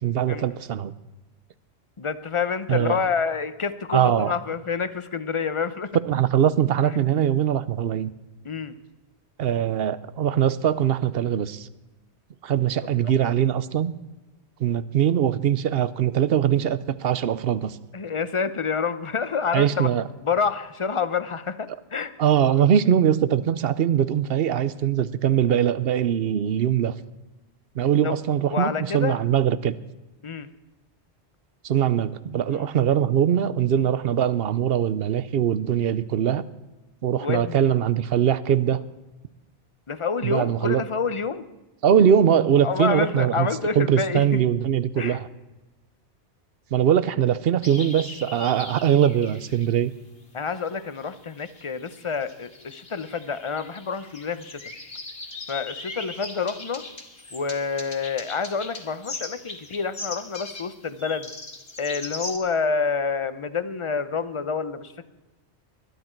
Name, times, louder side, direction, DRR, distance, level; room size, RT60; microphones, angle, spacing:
voice 1, 0.0-0.9 2.7-3.0 3.9-4.3 6.1-8.1 9.4-11.7 12.4-13.9 14.6-17.8 19.5-20.1 22.2-26.9 27.8-29.7 31.6-36.4 37.0-38.8 40.2-40.8 41.8-43.5 43.8-45.3 46.7-49.9, right 9 dB, 65° right, 15 dB, 0.8 m, -22 dB
voice 2, 2.0-5.9 8.4-8.8 13.0-13.1 17.9-19.9 20.2-22.1 28.0-28.2 28.5-29.2 30.2-30.5 32.5-32.6 37.2-37.7 39.9-41.5 42.6-44.4 45.0-45.2 50.3-54.6 55.5-56.8 57.3-61.3 61.8-65.1, left 5 dB, 35° left, 13 dB, 0.6 m, -28 dB
sound 1, 47.6-49.8 50.5-62.4, left 3 dB, 60° left, 2.2 m, -39 dB
21.0 x 12.0 x 4.5 m, 1.1 s
omnidirectional pair, 1.1 m